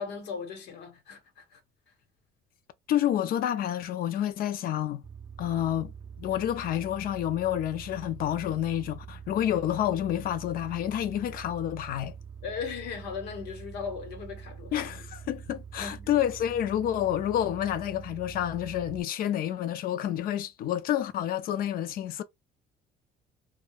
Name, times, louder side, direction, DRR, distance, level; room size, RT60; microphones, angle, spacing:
voice 1, 0.0-1.6 12.4-15.0 15.8-16.1, left 6 dB, 85° left, 1.1 m, -38 dB
voice 2, 2.9-5.0 5.4-5.9 6.2-12.2 14.7-22.2, left 11 dB, 60° left, 0.5 m, -29 dB
sound 1, 5.0-19.0, right 7 dB, 25° right, 0.4 m, -45 dB
2.2 x 2.2 x 3.2 m
cardioid pair, 110°, 17 cm